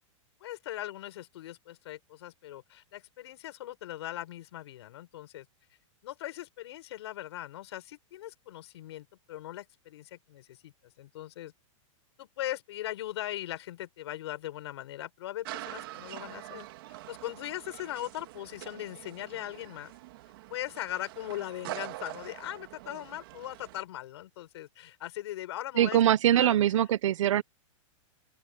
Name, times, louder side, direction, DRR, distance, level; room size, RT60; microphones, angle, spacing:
voice 1, 0.4-5.5 6.0-11.5 12.2-19.9 20.5-26.0 26.3-26.6, left 14 dB, 55° left, 6.7 m, -40 dB
sound 1, 15.4-23.8, right 17 dB, 45° right, 2.9 m, -44 dB
voice 2, 25.8-27.4, right 11 dB, 70° right, 0.8 m, -23 dB
open air
supercardioid pair, 175°, 17 cm